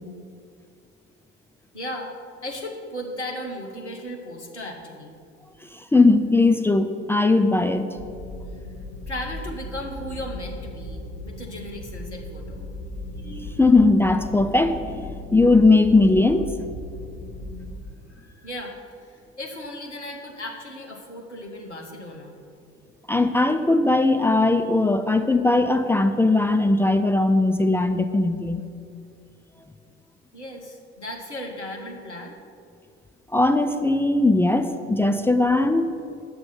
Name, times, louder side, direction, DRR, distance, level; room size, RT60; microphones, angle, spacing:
voice 1, 1.7-2.1 2.4-5.1 9.1-12.7 13.3-13.4 18.1-22.4 30.3-32.4, left 1 dB, 85° left, 1 dB, 1.2 m, -36 dB
voice 2, 5.7-7.9 13.2-16.5 23.1-28.6 33.3-35.9, left 2 dB, 5° left, 7 dB, 0.4 m, -19 dB
sound 1, 7.9-17.7, left 1 dB, 45° left, 2.7 m, -37 dB
9.4 x 7.7 x 5.9 m, 2.4 s
figure-of-eight pair, 60°, 34 cm